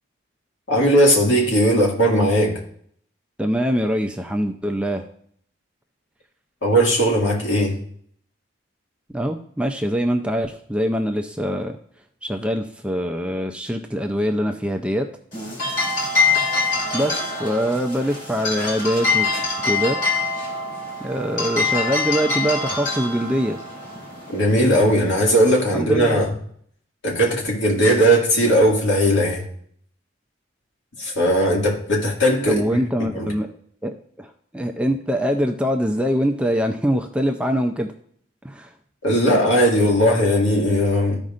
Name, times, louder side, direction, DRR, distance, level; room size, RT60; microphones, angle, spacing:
voice 1, 0.7-2.6 6.6-7.8 24.3-26.3 27.0-29.4 31.0-33.3 39.0-41.2, equal, 70° left, -2 dB, 2.1 m, -18 dB
voice 2, 3.4-5.0 9.1-11.8 12.2-15.1 16.3-16.4 16.9-19.3 19.6-20.0 21.0-23.6 25.7-26.2 32.5-33.5 33.8-37.9 38.4-38.7, equal, 5° right, 4 dB, 0.4 m, -23 dB
sound 1, 15.3-25.7, left 4 dB, 40° left, 2.9 m, -25 dB
14.0 x 5.3 x 2.5 m, 0.63 s
head